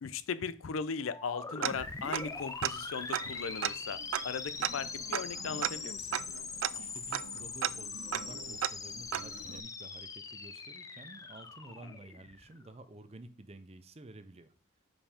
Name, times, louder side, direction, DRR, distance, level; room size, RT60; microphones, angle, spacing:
voice 1, 0.0-6.2, left 5 dB, 80° left, 0.5 m, -38 dB
sound 1, 1.0-12.7, left 4 dB, 15° left, 0.4 m, -42 dB
Tick-tock, 1.6-2.4 2.6-2.7 3.1-9.6, right 11 dB, 75° right, 0.3 m, -36 dB
voice 2, 6.8-14.5, right 2 dB, 30° right, 0.6 m, -51 dB
5.4 x 5.1 x 5.0 m
head